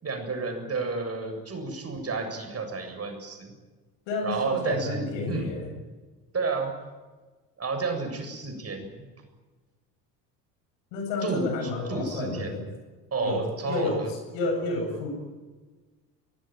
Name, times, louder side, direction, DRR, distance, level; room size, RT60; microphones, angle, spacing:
voice 1, 0.0-3.5 4.2-5.6 6.3-6.7 7.6-9.0 11.2-12.6 13.1-14.1, right 4 dB, 30° right, 5 dB, 7.6 m, -31 dB
voice 2, 4.1-5.7 10.9-12.6 13.2-14.0 14.3-15.1, left 2 dB, 65° left, 4 dB, 7.9 m, -30 dB
23.5 x 21.0 x 9.1 m, 1.3 s
figure-of-eight pair, 60°, 48 cm